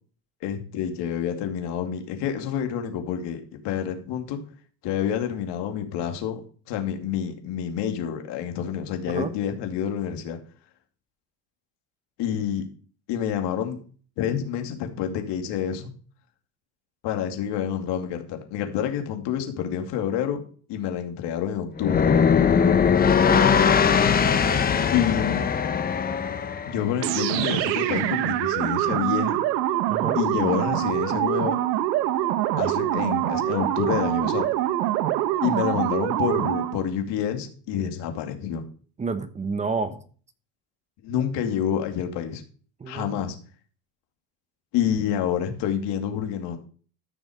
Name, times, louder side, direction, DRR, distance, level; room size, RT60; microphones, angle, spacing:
voice 1, 0.4-4.4 4.8-6.4 6.7-10.4 12.2-12.7 13.1-13.8 14.2-15.9 17.0-20.4 20.7-22.0 24.9-25.4 26.6-29.4 30.2-31.6 32.6-34.5 35.4-38.7 41.0-42.4 42.9-43.4 44.7-46.6, left 9 dB, 55° left, 2.5 m, -28 dB
sound 1, 21.8-26.9, left 7 dB, 20° left, 0.8 m, -20 dB
voice 2, 23.3-23.7 29.9-30.2 39.0-40.0 42.8-43.2, right 4 dB, 15° right, 1.0 m, -30 dB
sound 2, 27.0-36.9, right 13 dB, 80° right, 1.3 m, -24 dB
14.0 x 6.2 x 5.1 m
supercardioid pair, 130°, 50 cm